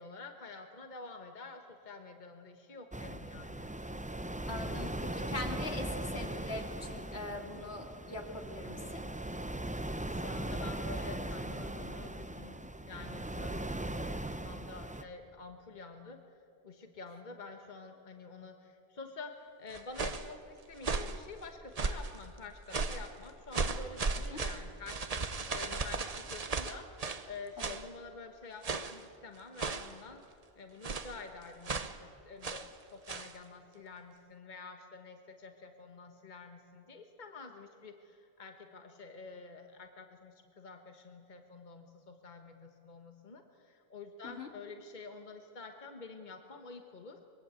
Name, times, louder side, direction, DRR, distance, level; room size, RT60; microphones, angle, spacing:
voice 1, 0.0-3.7 4.6-4.7 10.1-12.6 12.8-16.4 16.6-30.2 30.5-47.2, left 4 dB, 45° left, 5 dB, 1.5 m, -49 dB
sound 1, 2.9-15.0, right 1 dB, 10° right, 0.6 m, -39 dB
voice 2, 4.5-9.0 24.3-24.4 27.6-27.8 44.2-44.5, left 2 dB, 80° left, 2 dB, 2.9 m, -42 dB
sound 2, 19.7-20.3 20.8-21.2 21.7-22.2 22.7-23.1 23.5-27.3 27.6-27.9 28.6-29.0 29.6-30.0 30.8-31.2 31.6-32.0 32.4-32.7 33.1-33.3, right 4 dB, 40° right, 1.0 m, -36 dB
24.0 x 22.0 x 8.2 m, 2.6 s
omnidirectional pair, 1.1 m